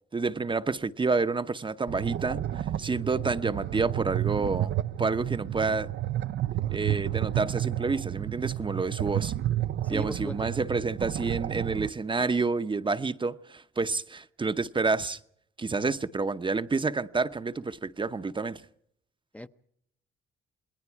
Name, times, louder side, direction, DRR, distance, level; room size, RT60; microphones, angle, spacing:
voice 1, 0.1-4.7 5.0-5.9 6.7-9.3 9.9-15.2 15.6-18.6, right 4 dB, 25° right, 0.9 m, -29 dB
sound 1, 1.9-11.9, right 12 dB, 65° right, 0.7 m, -31 dB
voice 2, 9.8-10.5 19.3-19.5, left 1 dB, 5° left, 0.7 m, -37 dB
28.0 x 20.0 x 4.7 m
cardioid pair, 90°, 20 cm